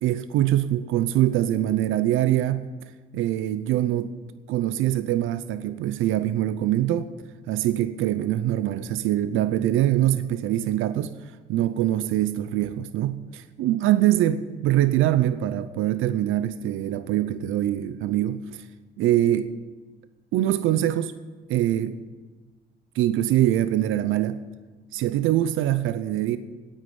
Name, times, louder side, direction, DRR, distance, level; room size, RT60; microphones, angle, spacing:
voice 1, 0.0-4.1 4.5-7.1 7.5-18.7 19.0-19.5 20.3-21.1 21.5-22.0 22.9-24.4 24.9-26.4, right 13 dB, 85° right, 13 dB, 0.6 m, -24 dB
9.2 x 9.0 x 9.3 m, 1.3 s
cardioid pair, 90°, 20 cm